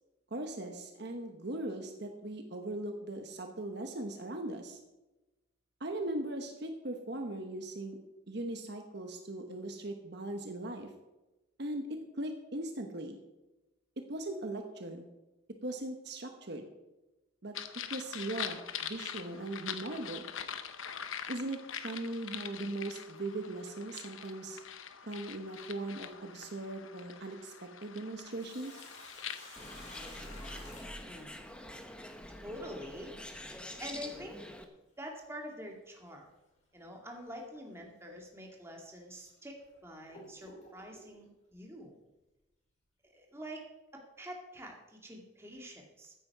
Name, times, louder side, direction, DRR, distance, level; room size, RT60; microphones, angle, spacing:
voice 1, 0.3-4.8 5.8-8.0 8.3-10.9 11.6-11.9 12.2-13.2 14.0-15.0 15.6-16.7 17.4-17.5 17.9-20.2 21.3-24.6 25.0-28.8, right 2 dB, 55° right, 5 dB, 1.2 m, -39 dB
sound 1, 17.5-30.8, left 8 dB, 80° left, 1.0 m, -44 dB
Sink (filling or washing), 28.3-31.7 34.1-34.2 36.1-36.3 36.8-36.9 37.7-37.8 38.5-38.6 39.3-41.2, left 1 dB, 35° left, 5.4 m, -53 dB
Bird, 29.6-34.6, left 1 dB, 5° left, 1.0 m, -46 dB
voice 2, 31.0-31.3 32.4-33.2 33.8-34.4 35.0-36.3 36.7-41.9 43.0-43.6 43.9-46.1, equal, 15° right, 0 dB, 2.2 m, -46 dB
15.0 x 9.5 x 4.8 m, 1.0 s
head